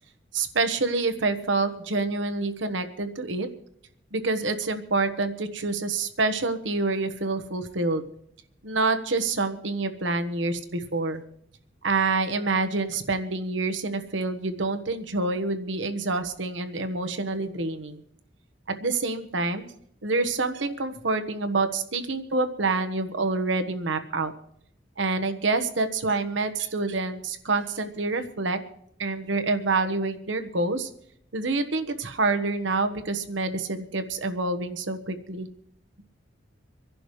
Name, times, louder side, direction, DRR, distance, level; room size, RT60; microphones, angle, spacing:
voice 1, 0.3-3.5 4.1-8.0 8.6-11.2 11.8-18.0 18.7-19.7 20.0-24.3 25.0-28.6 29.0-30.9 31.3-35.5, right 3 dB, 75° right, 7 dB, 1.2 m, -27 dB
26.0 x 11.0 x 3.2 m, 0.70 s
head